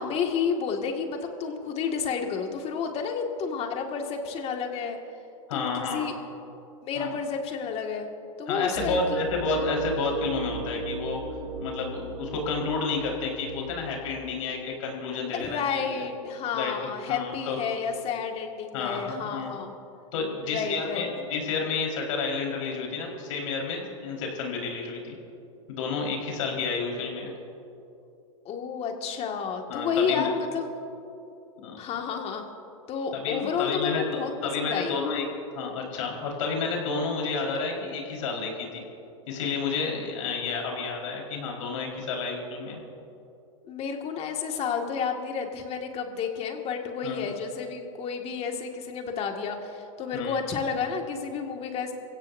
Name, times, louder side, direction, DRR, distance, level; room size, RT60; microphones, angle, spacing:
voice 1, 0.0-5.0 5.5-6.1 6.8-8.1 8.4-9.2 15.3-19.7 20.4-21.1 28.5-30.7 31.8-32.5 32.9-35.0 43.7-51.9, left 6 dB, 35° left, 3 dB, 2.0 m, -31 dB
voice 2, 5.5-6.1 6.9-7.1 8.5-11.2 11.6-16.0 16.5-17.6 18.7-19.5 20.1-25.2 25.7-27.3 29.7-30.3 31.6-31.8 33.2-35.2 35.5-38.8 39.3-42.8 47.0-47.3 50.1-50.4, left 4 dB, 70° left, 0 dB, 4.6 m, -30 dB
sound 1, 8.8-14.1, right 3 dB, 75° right, 2.7 m, -35 dB
27.5 x 16.0 x 2.7 m, 2.8 s
hypercardioid pair, 115°, 17 cm